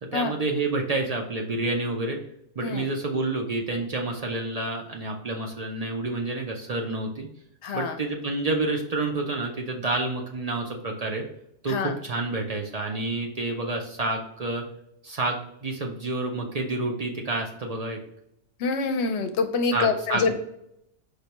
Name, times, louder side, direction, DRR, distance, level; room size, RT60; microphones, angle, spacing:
voice 1, 0.0-2.2 2.6-7.3 7.7-11.2 11.6-14.6 15.0-18.0 19.7-20.3, right 2 dB, 50° right, 1 dB, 0.5 m, -29 dB
voice 2, 7.6-8.0 11.7-11.9 18.6-20.3, left 4 dB, 75° left, 7 dB, 0.9 m, -26 dB
5.0 x 2.2 x 2.9 m, 0.77 s
omnidirectional pair, 1.2 m